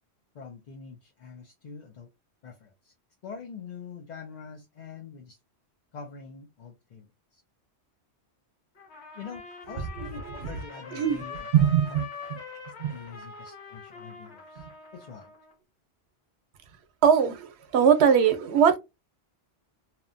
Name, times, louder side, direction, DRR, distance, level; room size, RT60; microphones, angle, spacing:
voice 1, 0.3-2.1 2.4-2.9 3.2-5.4 5.9-7.0 7.3-7.4 9.1-12.0 12.9-14.6 14.9-15.3, left 6 dB, 55° left, 0.6 m, -44 dB
Trumpet, 8.8-15.5, left 4 dB, 80° left, 1.1 m, -44 dB
voice 2, 10.9-11.2 11.5-12.1 12.8-12.9 17.0-18.8, right 8 dB, 75° right, 0.9 m, -21 dB
2.9 x 2.1 x 2.5 m
omnidirectional pair, 1.1 m